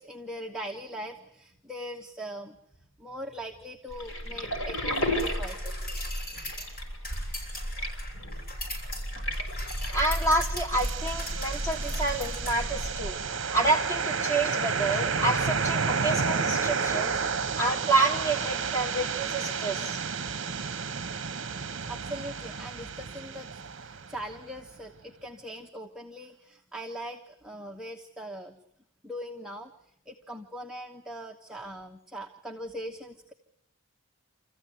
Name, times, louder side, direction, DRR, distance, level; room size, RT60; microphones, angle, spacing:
voice 1, 0.0-2.6 3.0-5.9 21.9-28.6 29.0-33.3, equal, 5° right, 0 dB, 1.1 m, -41 dB
sound 1, 3.9-13.2, equal, 65° left, 5.3 m, -33 dB
sound 2, 5.2-12.6, left 1 dB, 40° left, 7.9 m, -41 dB
voice 2, 9.9-20.0, right 2 dB, 10° left, -2 dB, 3.4 m, -28 dB
sound 3, 10.7-24.6, right 5 dB, 60° right, 0.9 m, -31 dB
27.0 x 15.0 x 9.3 m, 0.80 s
head